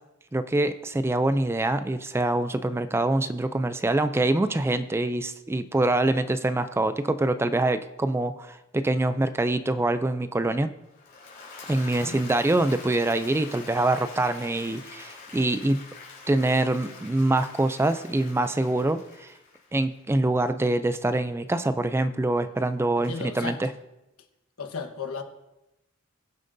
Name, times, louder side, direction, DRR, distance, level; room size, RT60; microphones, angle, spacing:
voice 1, 0.3-10.7 11.7-15.8 16.3-19.3 19.7-23.7, right 2 dB, 10° right, 11 dB, 0.3 m, -25 dB
Applause / Crowd, 10.9-20.0, left 4 dB, 40° left, 3.6 m, -45 dB
voice 2, 11.8-12.2 23.0-23.6 24.6-25.2, left 5 dB, 80° left, 6 dB, 1.2 m, -35 dB
22.0 x 7.4 x 2.6 m, 0.95 s
head